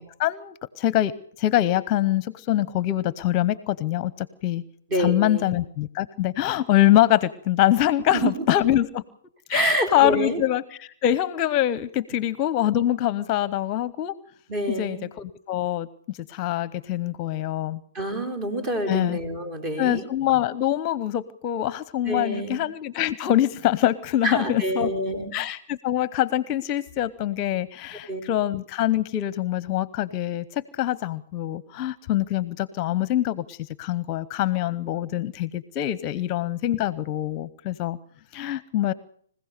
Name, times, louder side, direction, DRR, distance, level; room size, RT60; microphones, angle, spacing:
voice 1, 0.0-4.6 5.0-9.0 9.5-14.2 14.8-17.8 18.9-19.2 19.8-24.9 25.3-38.0 38.3-38.9, left 13 dB, 30° left, 18 dB, 0.8 m, -24 dB
voice 2, 4.9-5.6 8.1-8.5 9.5-10.4 14.5-15.0 17.9-20.0 22.0-22.6 24.2-25.3 28.1-28.2, right 1 dB, 30° right, 6 dB, 4.1 m, -27 dB
26.0 x 16.0 x 6.7 m, 0.62 s
hypercardioid pair, 140°, 0 cm